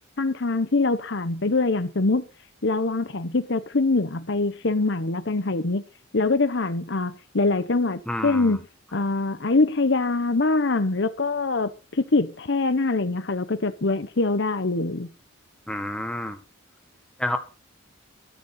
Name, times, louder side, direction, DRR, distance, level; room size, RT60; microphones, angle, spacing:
voice 1, 0.2-2.2 2.6-5.8 6.1-8.6 8.9-15.1, left 3 dB, 60° left, 0.9 m, -24 dB
voice 2, 8.1-8.6 15.7-16.4 17.2-17.4, left 1 dB, 5° left, 1.6 m, -29 dB
14.0 x 6.7 x 8.1 m
head